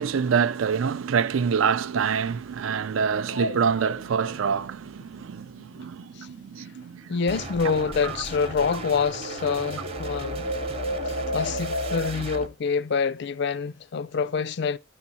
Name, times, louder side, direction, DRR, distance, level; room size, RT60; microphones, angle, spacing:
voice 1, 0.0-7.2 8.0-8.2, right 6 dB, 75° right, 0.4 m, -26 dB
sound 1, 3.1-7.2 7.5-12.1, equal, 90° left, 0.7 m, -34 dB
voice 2, 7.1-10.5 11.1-14.8, left 5 dB, 55° left, 0.4 m, -26 dB
sound 2, 7.3-12.5, right 2 dB, 30° right, 0.7 m, -36 dB
11.0 x 7.2 x 2.7 m
head